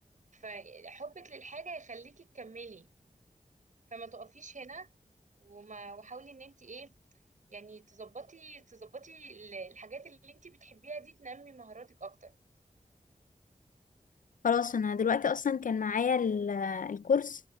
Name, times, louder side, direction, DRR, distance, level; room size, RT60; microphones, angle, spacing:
voice 1, 0.3-2.9 3.9-4.9 5.4-7.0 7.5-12.3, right 4 dB, 65° right, 6.7 m, -46 dB
voice 2, 14.4-17.4, left 6 dB, 70° left, 0.5 m, -29 dB
wide cardioid pair, 75°, 14 cm